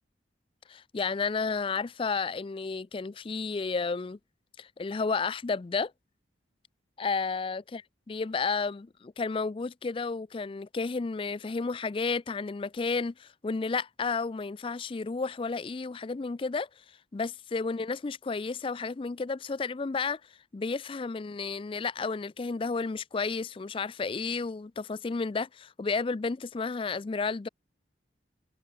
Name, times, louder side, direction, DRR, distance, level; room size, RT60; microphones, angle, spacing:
voice 1, 0.7-4.2 4.6-5.9 7.0-16.7 17.1-20.2 20.5-27.5, left 4 dB, 30° left, 0.4 m, -32 dB
head